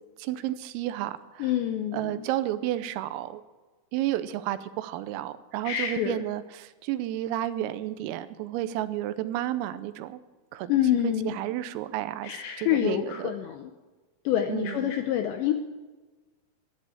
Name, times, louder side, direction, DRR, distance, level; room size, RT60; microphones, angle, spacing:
voice 1, 0.2-1.5 1.9-3.4 3.9-10.2 10.5-10.7 11.0-12.3 12.6-13.3 14.5-14.8, right 13 dB, 85° right, 13 dB, 3.4 m, -31 dB
voice 2, 1.4-2.2 5.6-6.2 10.7-11.4 12.2-13.7 14.3-15.5, left 11 dB, 80° left, 5 dB, 2.5 m, -27 dB
13.5 x 10.5 x 8.3 m, 1.3 s
omnidirectional pair, 6.0 m